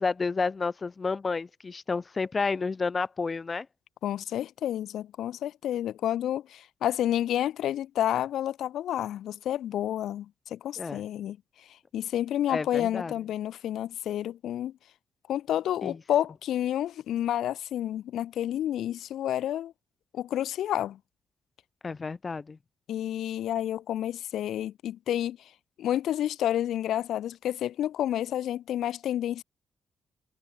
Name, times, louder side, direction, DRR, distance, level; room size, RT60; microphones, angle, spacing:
voice 1, 0.0-3.7 10.8-11.0 12.5-13.1 15.8-16.0 21.8-22.6, left 4 dB, 25° left, 4.4 m, -30 dB
voice 2, 4.0-11.4 11.9-14.7 15.3-19.7 20.1-21.0 22.9-25.5 25.8-29.4, left 11 dB, 80° left, 1.1 m, -30 dB
cardioid pair, 165°, 0 cm